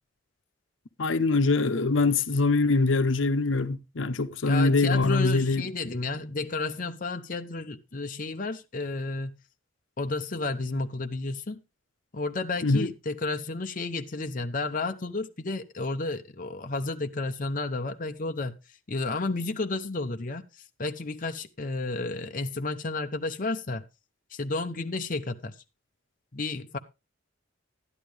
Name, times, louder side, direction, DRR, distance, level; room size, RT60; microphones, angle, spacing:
voice 1, 1.0-5.6 12.6-12.9, left 3 dB, 85° left, 0.8 m, -23 dB
voice 2, 4.4-9.3 10.0-11.6 12.1-18.6 18.9-20.5 20.8-23.8 24.3-25.5 26.3-26.8, left 3 dB, 45° left, 0.7 m, -32 dB
12.0 x 11.0 x 3.3 m
head